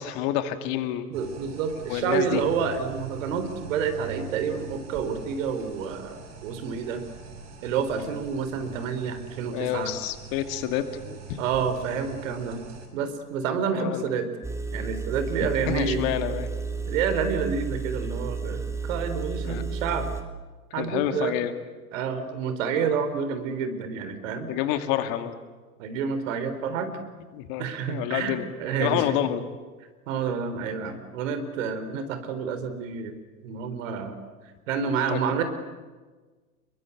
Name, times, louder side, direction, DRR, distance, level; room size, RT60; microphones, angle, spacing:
voice 1, 0.0-1.5 1.9-2.4 9.5-11.4 13.7-14.1 15.4-16.5 19.4-19.7 20.7-21.5 24.5-25.3 27.3-28.5 28.8-29.5 35.1-35.2, left 11 dB, 45° left, 9 dB, 2.5 m, -28 dB
sound 1, 1.1-12.9, right 6 dB, 35° right, 6.1 m, -43 dB
voice 2, 1.1-7.0 7.6-9.9 11.4-12.6 12.9-14.3 14.7-16.0 16.9-20.1 20.7-21.3 21.9-24.5 25.8-26.9 27.6-29.1 30.1-33.1 33.4-34.2 34.7-35.4, right 6 dB, 55° right, 10 dB, 4.0 m, -29 dB
Engine, 14.4-20.2, right 5 dB, 5° right, 2.6 m, -32 dB
27.5 x 22.5 x 8.4 m, 1.3 s
figure-of-eight pair, 95°, 45 cm